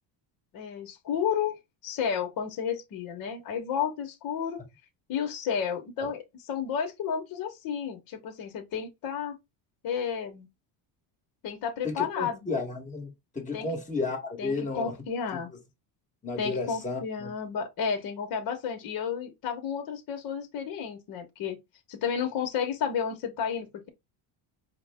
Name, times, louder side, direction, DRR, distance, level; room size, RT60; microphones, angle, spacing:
voice 1, 0.5-4.6 5.1-9.3 9.8-10.5 11.4-12.4 13.5-13.7 14.4-15.5 16.4-21.6 21.9-23.9, left 7 dB, 45° left, 1.2 m, -32 dB
voice 2, 11.8-14.9 16.2-17.3, left 3 dB, 15° left, 1.4 m, -33 dB
5.0 x 2.2 x 3.4 m
cardioid pair, 150°, 47 cm